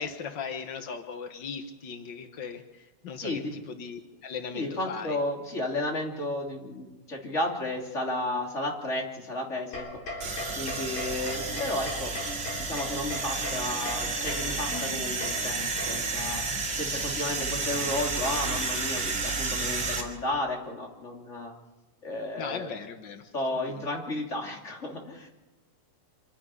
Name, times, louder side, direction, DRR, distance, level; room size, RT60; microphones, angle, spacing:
voice 1, 0.0-5.2 22.4-23.3 23.6-23.8, left 6 dB, 80° left, 7 dB, 1.0 m, -38 dB
voice 2, 3.2-3.5 4.5-10.0 10.6-12.1 12.6-16.4 16.8-21.5 22.0-22.7 23.3-25.3, left 1 dB, 20° left, 0 dB, 3.0 m, -33 dB
sound 1, 9.7-16.3, left 2 dB, 55° left, 4.9 m, -39 dB
sound 2, 10.2-20.0, right 3 dB, 35° right, 3.9 m, -31 dB
27.0 x 10.5 x 9.7 m, 1.2 s
omnidirectional pair, 3.9 m